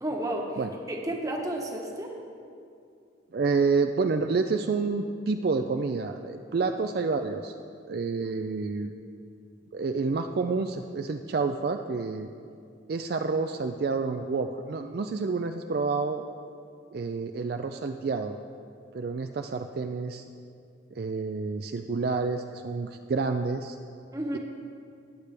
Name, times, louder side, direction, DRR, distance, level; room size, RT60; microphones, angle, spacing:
voice 1, 0.0-0.6 0.9-2.2 6.6-6.7 24.1-24.4, right 1 dB, 20° right, 0 dB, 1.2 m, -32 dB
voice 2, 3.3-7.6 7.9-8.9 9.7-12.3 12.9-16.2 16.9-18.4 18.9-20.2 20.9-23.8 24.3-24.4, right 4 dB, 55° right, 6 dB, 0.4 m, -29 dB
19.5 x 8.3 x 3.4 m, 2.4 s
head